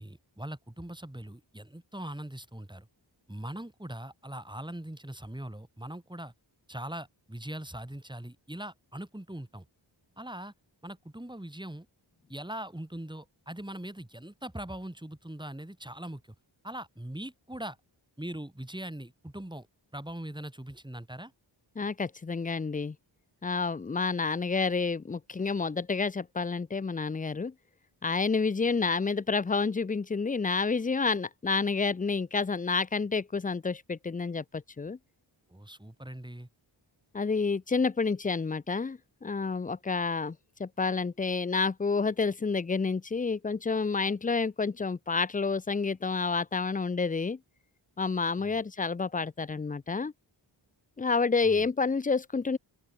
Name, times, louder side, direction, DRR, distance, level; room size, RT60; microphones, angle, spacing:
voice 1, 0.0-2.9 3.3-6.3 6.7-9.7 10.2-10.5 10.8-11.9 12.3-16.3 16.6-17.8 18.2-19.7 19.9-21.3 35.5-36.5 48.4-48.6 51.4-51.7, right 1 dB, 10° right, 3.5 m, -41 dB
voice 2, 21.8-23.0 23.4-27.5 28.0-35.0 37.1-47.4 48.0-50.1 51.0-52.6, left 4 dB, 20° left, 0.4 m, -29 dB
open air
wide cardioid pair, 70°, 48 cm